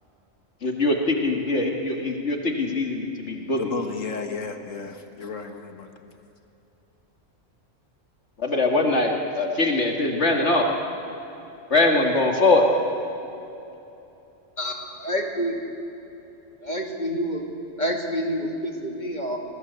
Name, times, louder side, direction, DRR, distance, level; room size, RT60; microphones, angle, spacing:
voice 1, 0.6-3.7 8.4-10.7 11.7-12.7, left 2 dB, 60° left, 2 dB, 2.4 m, -22 dB
voice 2, 3.6-6.2, left 5 dB, 75° left, 6 dB, 1.9 m, -33 dB
voice 3, 15.0-15.5 16.6-17.4 17.8-19.4, equal, 35° left, 2 dB, 2.9 m, -27 dB
28.5 x 20.5 x 8.2 m, 2.9 s
omnidirectional pair, 1.3 m